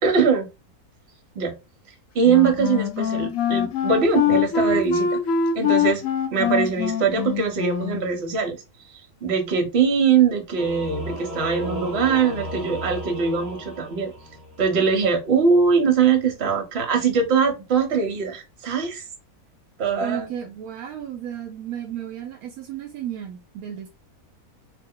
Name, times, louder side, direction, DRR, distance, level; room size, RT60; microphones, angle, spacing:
voice 1, 0.0-0.5 1.3-1.6 2.1-5.2 5.5-6.0 6.3-8.6 8.9-14.1 14.6-19.0 19.8-20.3, right 6 dB, 50° right, 1.0 m, -22 dB
Wind instrument woodwind instrument, 2.2-8.1, left 7 dB, 70° left, 1.0 m, -24 dB
Singing / Musical instrument, 10.6-14.7, equal, ahead, 1.0 m, -34 dB
voice 2, 20.0-23.9, right 9 dB, 75° right, 1.0 m, -33 dB
3.0 x 2.1 x 3.6 m
omnidirectional pair, 1.7 m